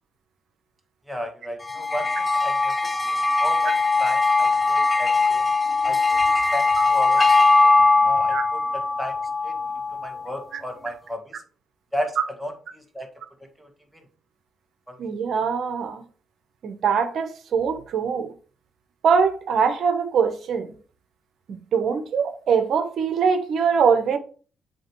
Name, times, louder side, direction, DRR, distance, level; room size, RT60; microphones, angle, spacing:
voice 1, 1.1-2.1 2.4-3.7 4.0-5.5 5.8-7.7 8.0-9.2 9.4-9.5 10.0-11.3 11.9-13.1 13.6-14.0 14.9-15.0, equal, 5° right, 1.6 m, -34 dB
sound 1, 1.6-10.2, left 3 dB, 25° left, 0.7 m, -20 dB
voice 2, 15.0-16.0 16.6-18.3 19.0-20.7 21.5-24.2, right 6 dB, 65° right, 1.0 m, -22 dB
7.7 x 3.0 x 4.6 m
cardioid pair, 90°, 0 cm